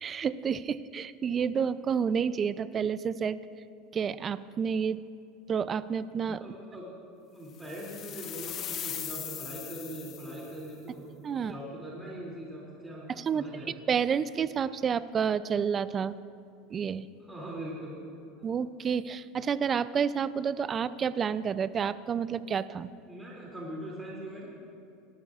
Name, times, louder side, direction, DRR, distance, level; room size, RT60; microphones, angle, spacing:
voice 1, 0.0-3.4 3.9-5.0 5.5-6.5 11.2-11.5 13.2-16.2 16.7-17.1 18.4-22.9, right 7 dB, 25° right, 16 dB, 0.3 m, -30 dB
voice 2, 6.4-6.9 7.3-11.1 11.4-13.7 17.2-17.9 23.1-24.5, right 1 dB, 10° right, -6 dB, 2.6 m, -41 dB
sound 1, 7.6-10.6, left 10 dB, 40° left, 0.8 m, -39 dB
18.5 x 12.5 x 2.4 m, 2.5 s
supercardioid pair, 130°, 0 cm